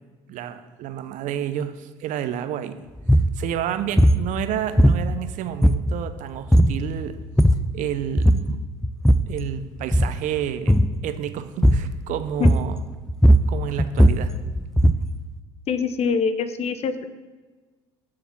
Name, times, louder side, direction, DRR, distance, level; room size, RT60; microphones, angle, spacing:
voice 1, 0.3-2.8 3.3-7.2 7.7-8.6 9.3-12.8 13.5-14.3, right 10 dB, 60° right, 10 dB, 0.8 m, -30 dB
sound 1, 3.0-3.3 4.0-4.3 4.8-5.3 5.6-6.1 6.5-6.8 7.2-7.7 8.2-8.5 8.8-9.4 9.8-10.2 10.7-11.0 11.6-12.0 12.4-12.8 13.1-15.1, equal, 5° left, 0.5 m, -17 dB
voice 2, 15.7-17.1, left 5 dB, 45° left, 11 dB, 0.9 m, -24 dB
7.2 x 6.8 x 6.1 m, 1.3 s
hypercardioid pair, 65°, 15 cm